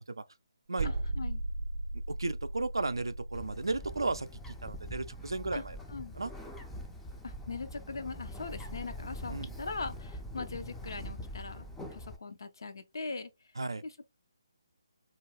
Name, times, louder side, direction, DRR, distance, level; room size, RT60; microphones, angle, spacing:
voice 1, 0.8-1.4 5.5-5.6 5.9-6.1 7.2-11.7 11.9-13.3 13.8-14.2, left 4 dB, 65° left, 0.5 m, -40 dB
sound 1, 0.8-3.9, right 2 dB, 35° right, 0.6 m, -36 dB
voice 2, 2.1-5.8 6.1-6.3 9.3-9.5 13.6-13.8, right 3 dB, 80° right, 0.3 m, -34 dB
Bird, 3.3-12.2, equal, 5° left, 0.3 m, -44 dB
2.4 x 2.1 x 3.2 m
figure-of-eight pair, 145°, 2 cm